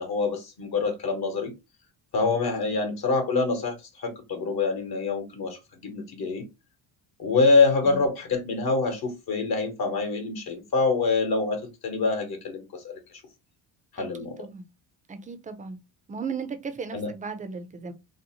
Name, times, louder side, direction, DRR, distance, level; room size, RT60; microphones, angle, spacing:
voice 1, 0.0-1.5 2.1-6.4 7.2-13.0 13.9-14.4 16.9-17.1, left 4 dB, 55° left, 1.1 m, -25 dB
voice 2, 14.0-14.7 15.1-15.8 16.1-17.9, right 5 dB, 20° right, 0.4 m, -36 dB
2.7 x 2.0 x 2.8 m
cardioid pair, 85°, 46 cm